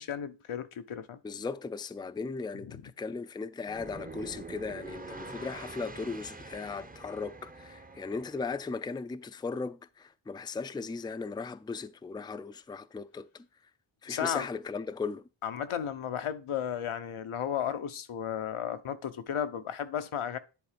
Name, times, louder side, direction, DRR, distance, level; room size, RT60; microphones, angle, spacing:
voice 1, 0.0-1.2 14.1-14.5 15.4-20.4, left 9 dB, 85° left, 0.9 m, -34 dB
voice 2, 1.2-13.5 14.0-15.2, left 4 dB, 10° left, 0.4 m, -37 dB
sound 1, 3.6-8.7, right 3 dB, 20° right, 0.7 m, -45 dB
10.5 x 3.8 x 5.0 m
wide cardioid pair, 75°, 48 cm